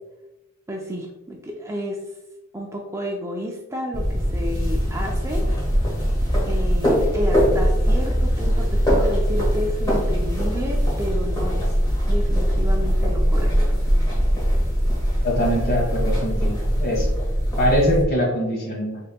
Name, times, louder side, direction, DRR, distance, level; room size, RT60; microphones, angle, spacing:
voice 1, 0.7-2.0 2.5-5.4 6.4-11.7 12.0-13.8, equal, 15° right, 0 dB, 0.5 m, -31 dB
sound 1, 3.9-18.0, equal, 20° left, 1.4 m, -21 dB
voice 2, 15.2-16.5 16.8-17.1 17.6-19.0, equal, 45° left, -2 dB, 1.4 m, -22 dB
5.4 x 3.8 x 2.2 m, 1.0 s
head